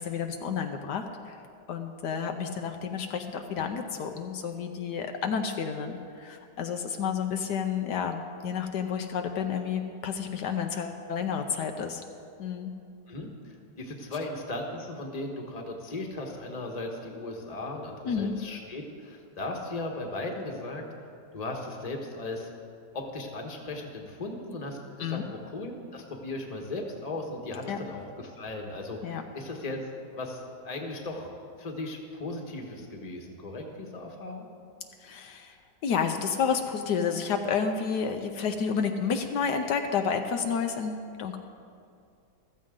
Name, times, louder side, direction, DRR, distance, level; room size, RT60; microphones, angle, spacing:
voice 1, 0.0-1.4 1.7-12.0 12.4-12.7 18.1-18.4 25.0-25.2 27.7-27.8 29.0-29.2 35.0-35.6 35.8-41.4, left 6 dB, 75° left, 5 dB, 1.3 m, -30 dB
voice 2, 13.1-20.8 21.3-22.5 22.9-29.0 29.3-29.8 30.1-31.3 31.6-34.5, left 2 dB, 25° left, 1 dB, 1.3 m, -37 dB
15.0 x 14.0 x 3.8 m, 2.4 s
omnidirectional pair, 1.9 m